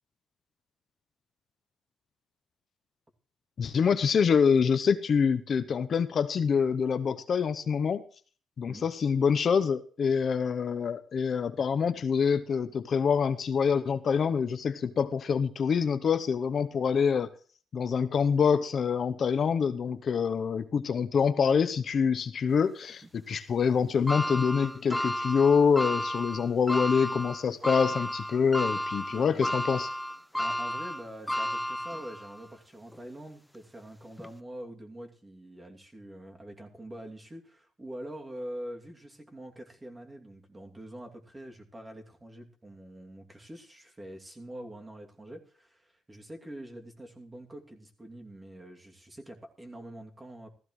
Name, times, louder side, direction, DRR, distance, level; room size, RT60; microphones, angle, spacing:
voice 1, 3.6-8.0 8.6-17.3 17.7-29.9, left 6 dB, 50° left, 11 dB, 0.8 m, -26 dB
sound 1, 24.1-32.4 32.9-33.0 34.2-34.3, left 1 dB, 5° left, 0.5 m, -32 dB
voice 2, 29.1-29.6 30.4-50.5, right 1 dB, 20° right, 2 dB, 2.6 m, -45 dB
15.5 x 14.5 x 3.2 m, 0.42 s
cardioid pair, 90°, 0 cm